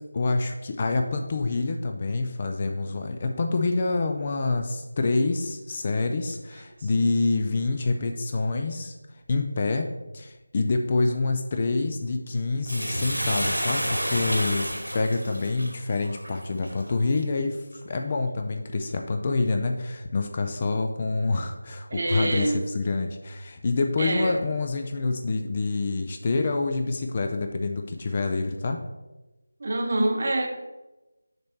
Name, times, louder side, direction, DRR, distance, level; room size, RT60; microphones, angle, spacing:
voice 1, 0.1-8.9 9.3-28.8, left 3 dB, 25° left, 5 dB, 0.4 m, -27 dB
Bathtub (filling or washing), 12.6-17.2 17.7-17.8, equal, 90° right, 2.2 m, -30 dB
voice 2, 21.9-22.6 24.0-24.4 29.6-30.5, right 1 dB, 40° right, 3 dB, 0.9 m, -26 dB
6.6 x 3.2 x 5.6 m, 1.1 s
figure-of-eight pair, 165°, 0 cm